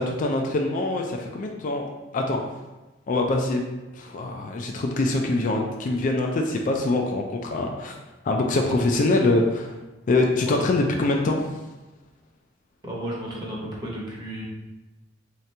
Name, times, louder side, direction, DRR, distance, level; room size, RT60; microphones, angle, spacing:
voice 1, 0.0-1.9 2.1-2.4 3.1-3.6 4.0-7.9 8.2-9.7 10.1-11.4, left 2 dB, 40° left, 2 dB, 0.3 m, -24 dB
voice 2, 12.8-14.4, right 1 dB, 20° right, -4 dB, 0.9 m, -33 dB
3.7 x 2.8 x 3.3 m, 1.1 s
head